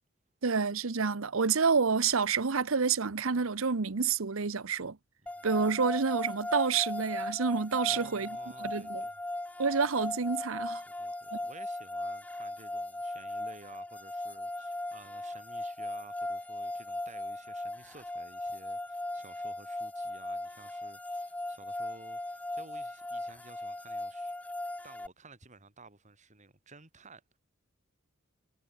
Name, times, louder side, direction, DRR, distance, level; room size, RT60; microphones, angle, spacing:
voice 1, 0.4-5.0 5.4-8.3 8.6-9.0 9.6-10.8 11.3-11.4, right 5 dB, 70° right, 0.9 m, -28 dB
sound 1, 5.3-25.1, left 1 dB, 5° left, 0.5 m, -38 dB
voice 2, 7.9-9.3 10.8-24.4 24.8-27.4, right 3 dB, 35° right, 4.4 m, -54 dB
head